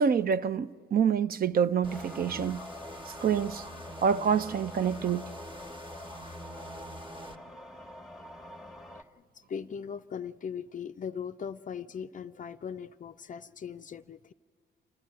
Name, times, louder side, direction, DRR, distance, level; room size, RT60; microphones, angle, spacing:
voice 1, 0.0-2.6 3.2-3.6 4.0-5.3, right 7 dB, 50° right, 0.5 m, -27 dB
sound 1, 1.8-9.0, left 1 dB, ahead, 1.1 m, -47 dB
sound 2, 1.8-7.4, equal, 25° right, 1.3 m, -44 dB
voice 2, 9.0-14.3, left 7 dB, 40° left, 0.5 m, -39 dB
30.0 x 13.0 x 7.6 m
cardioid pair, 90°, 20 cm